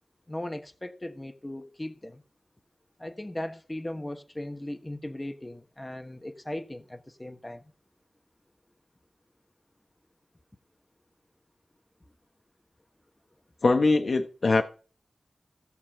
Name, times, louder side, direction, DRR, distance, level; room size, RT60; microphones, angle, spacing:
voice 1, 0.3-2.2 3.0-7.6, left 1 dB, 20° left, 1.3 m, -38 dB
voice 2, 13.6-14.6, left 3 dB, 65° left, 1.2 m, -22 dB
16.5 x 7.3 x 4.9 m
wide cardioid pair, 60°, 0 cm